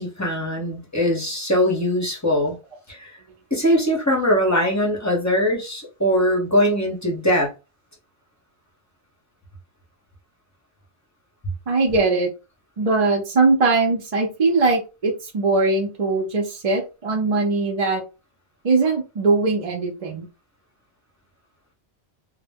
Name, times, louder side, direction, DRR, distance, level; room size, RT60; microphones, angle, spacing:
voice 1, 0.0-2.6 2.9-3.1 3.5-7.5, equal, 20° left, 0.7 m, -21 dB
voice 2, 11.7-12.3 12.8-18.0 18.6-20.3, right 3 dB, 45° right, 0.5 m, -20 dB
2.1 x 2.1 x 3.4 m
omnidirectional pair, 1.1 m